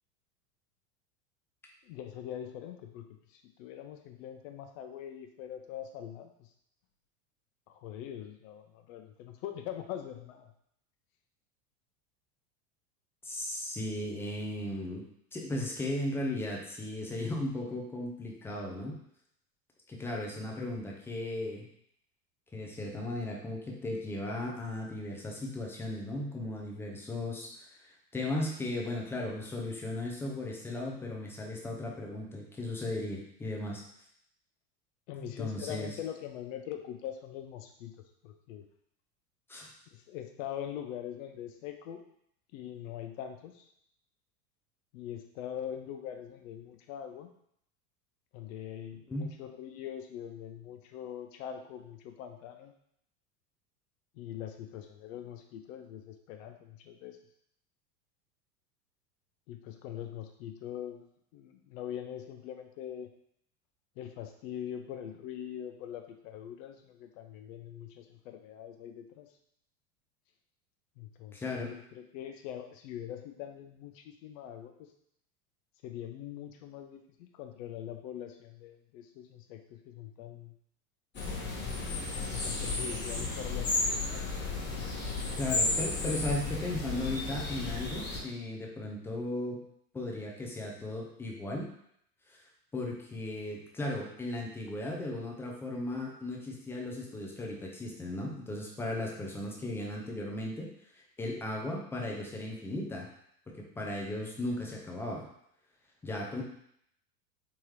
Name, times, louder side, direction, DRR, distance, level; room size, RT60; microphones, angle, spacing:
voice 1, 1.8-3.0 3.3-6.5 7.7-10.5 35.1-37.9 38.2-38.7 39.9-42.0 42.5-43.7 44.9-47.3 48.3-52.7 54.1-57.2 59.5-61.1 61.3-63.1 64.0-69.3 71.0-74.9 75.8-80.5 82.2-84.3, left 10 dB, 55° left, 6 dB, 0.7 m, -43 dB
voice 2, 13.2-15.0 15.3-18.9 19.9-21.6 22.5-33.8 35.2-35.9 39.5-39.7 49.1-49.3 71.3-71.7 85.4-89.6 89.9-91.7 92.3-92.4 92.7-100.7 101.2-103.1 103.6-105.3 106.0-106.4, left 1 dB, 5° left, -1 dB, 0.3 m, -36 dB
sound 1, 81.1-88.2, left 3 dB, 25° left, 1.0 m, -33 dB
3.6 x 3.0 x 3.1 m, 0.71 s
hypercardioid pair, 95°, 47 cm